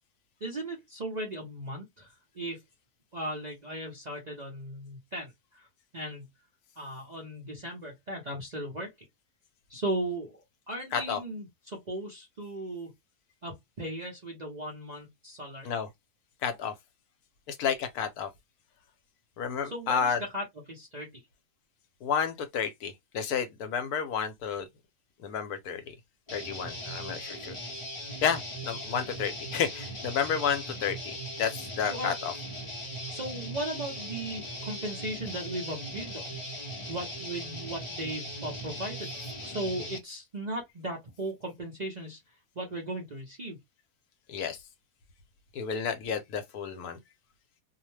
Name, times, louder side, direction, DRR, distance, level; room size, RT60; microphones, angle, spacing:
voice 1, 0.4-2.6 3.1-5.7 5.9-6.3 6.8-8.9 9.7-12.9 13.4-15.8 19.6-21.2 31.9-32.2 33.1-36.4 36.9-39.1 39.4-42.2 42.5-43.6, right 1 dB, 45° right, 0.6 m, -37 dB
voice 2, 16.4-16.7 17.5-18.3 19.4-20.2 22.0-24.7 25.2-25.9 26.3-27.6 28.2-32.3 44.3-44.6 45.5-47.0, left 7 dB, 75° left, 1.1 m, -31 dB
Guitar, 26.3-40.0, equal, 30° left, 0.6 m, -39 dB
2.7 x 2.1 x 3.0 m
omnidirectional pair, 1.7 m